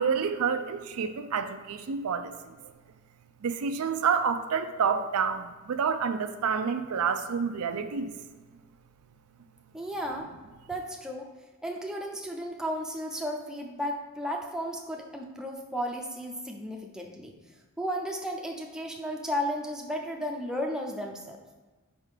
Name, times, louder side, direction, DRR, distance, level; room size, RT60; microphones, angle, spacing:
voice 1, 0.0-2.6 3.4-8.1, right 6 dB, 85° right, 9 dB, 0.4 m, -28 dB
voice 2, 9.7-10.4 10.7-11.3 11.6-17.4 17.8-21.4, equal, 5° right, 0 dB, 0.6 m, -34 dB
5.4 x 3.6 x 4.9 m, 1.3 s
head